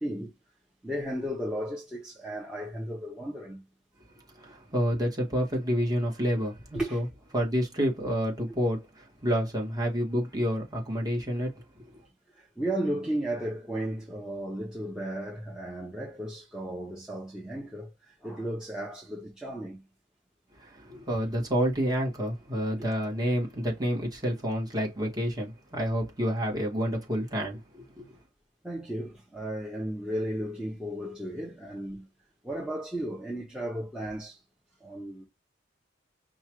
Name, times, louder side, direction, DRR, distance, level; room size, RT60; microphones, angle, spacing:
voice 1, 0.0-0.3 0.8-3.6 6.7-7.0 12.3-19.8 28.6-32.1 32.4-34.4 34.8-35.3, right 1 dB, 5° right, 1.0 m, -34 dB
voice 2, 4.3-7.0 7.3-11.9 20.6-28.1, equal, 20° right, 1.8 m, -29 dB
5.4 x 2.5 x 3.1 m
head